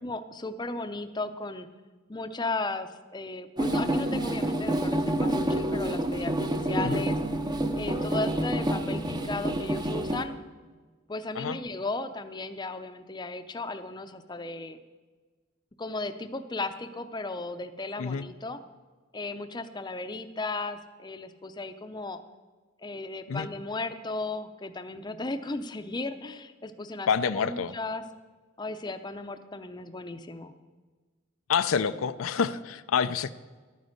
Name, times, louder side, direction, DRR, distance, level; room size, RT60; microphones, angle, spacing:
voice 1, 0.0-1.7 2.1-6.3 6.6-7.2 7.7-10.4 11.1-14.8 15.8-18.6 19.1-22.2 22.8-27.1 27.3-28.0 28.6-30.5, left 3 dB, 20° left, 9 dB, 0.6 m, -35 dB
sound 1, 3.6-10.2, right 1 dB, 20° right, 0.7 m, -28 dB
voice 2, 27.1-27.7 31.5-33.3, left 6 dB, 80° left, 12 dB, 0.5 m, -27 dB
12.0 x 9.5 x 6.4 m, 1.4 s
head